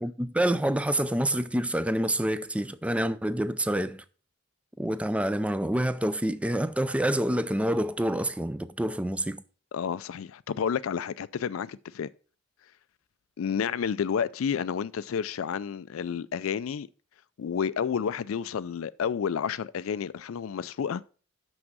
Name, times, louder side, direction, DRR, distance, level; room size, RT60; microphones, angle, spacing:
voice 1, 0.0-4.0 4.8-9.4, right 1 dB, 5° right, 0.4 m, -27 dB
voice 2, 9.7-12.1 13.4-16.9 17.4-21.0, left 7 dB, 80° left, 0.4 m, -30 dB
6.3 x 6.1 x 6.1 m
head